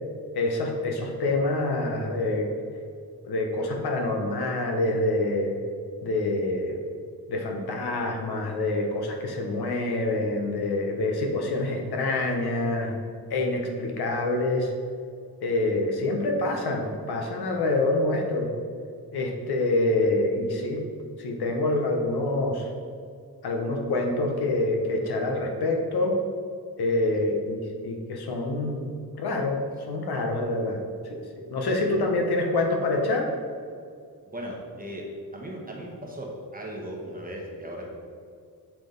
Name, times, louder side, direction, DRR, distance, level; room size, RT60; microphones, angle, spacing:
voice 1, 0.4-2.5 3.2-5.5 6.0-6.8 7.3-12.9 13.3-14.7 15.4-18.5 19.1-20.8 21.2-22.7 23.4-26.2 26.8-28.9 29.2-29.6 29.9-30.8 31.1-31.2 31.5-33.3, left 2 dB, 75° left, 2 dB, 0.9 m, -26 dB
voice 2, 31.6-32.0 34.3-35.0 35.3-37.9, right 1 dB, 20° right, -1 dB, 1.0 m, -38 dB
7.3 x 3.5 x 3.8 m, 2.3 s
cardioid pair, 95°, 39 cm